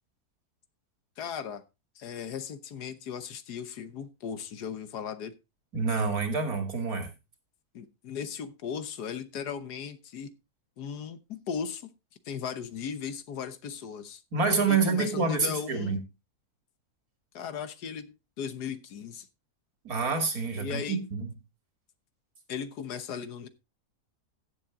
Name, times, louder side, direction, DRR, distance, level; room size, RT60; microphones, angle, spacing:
voice 1, 1.2-1.6 1.9-5.3 7.7-10.3 10.8-11.9 12.2-14.2 14.7-16.0 17.3-19.3 20.6-21.0 22.5-23.5, left 7 dB, 90° left, 1.6 m, -37 dB
voice 2, 5.7-7.1 14.3-16.0 19.8-21.3, right 4 dB, 65° right, 2.8 m, -27 dB
15.5 x 7.3 x 3.6 m
omnidirectional pair, 1.7 m